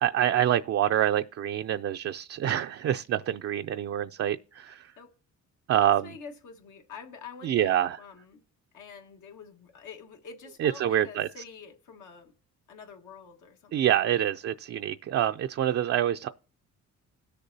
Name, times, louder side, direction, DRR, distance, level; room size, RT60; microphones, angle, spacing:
voice 1, 0.0-4.9 5.7-6.0 7.4-8.0 10.6-11.3 13.7-16.3, right 11 dB, 50° right, 0.4 m, -26 dB
voice 2, 5.7-8.4 8.7-12.3 12.7-13.8, left 5 dB, 80° left, 1.6 m, -46 dB
18.0 x 6.7 x 2.7 m
cardioid pair, 90°, 30 cm